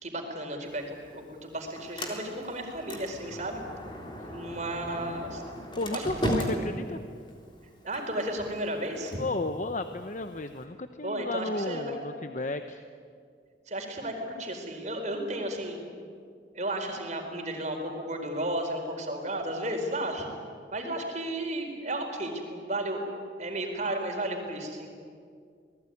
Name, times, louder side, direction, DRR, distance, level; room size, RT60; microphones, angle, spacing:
voice 1, 0.0-3.6 4.3-5.4 5.9-6.5 7.8-9.2 11.0-11.9 13.7-14.1 14.4-15.8 16.5-20.3 20.7-23.0 23.4-24.9, right 1 dB, 40° right, 4 dB, 4.4 m, -33 dB
Sliding door, 0.7-10.6, equal, 25° left, 3.7 m, -38 dB
voice 2, 5.7-7.0 9.2-12.8, left 2 dB, 45° left, 8 dB, 0.9 m, -33 dB
28.0 x 19.0 x 9.9 m, 2.2 s
head